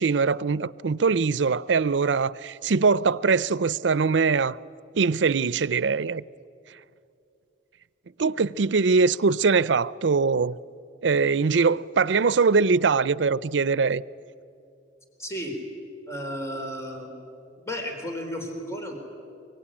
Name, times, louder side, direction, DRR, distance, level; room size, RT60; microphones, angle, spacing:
voice 1, 0.0-4.6 5.0-6.2 8.2-10.6 11.0-14.0, right 4 dB, 80° right, 0.5 m, -22 dB
voice 2, 15.2-15.6 16.1-17.1 17.6-19.0, equal, 15° left, 4.0 m, -33 dB
24.5 x 23.0 x 10.0 m
head